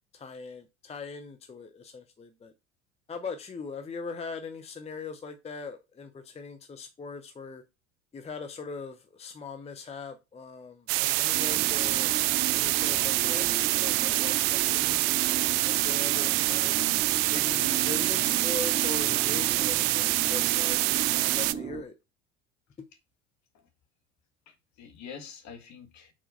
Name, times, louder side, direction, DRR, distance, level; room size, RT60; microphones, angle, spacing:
voice 1, 0.1-2.5 3.1-7.6 8.1-12.1 12.5-13.5 13.7-16.8 17.3-20.8 21.0-21.9 22.8-22.9, left 4 dB, 15° left, 0.7 m, -40 dB
sound 1, 10.9-21.5, right 19 dB, 55° right, 0.5 m, -26 dB
sound 2, 11.3-21.8, right 7 dB, 15° right, 0.7 m, -37 dB
voice 2, 24.5-26.1, left 6 dB, 50° left, 1.7 m, -46 dB
4.6 x 4.3 x 5.4 m
figure-of-eight pair, 65°, 36 cm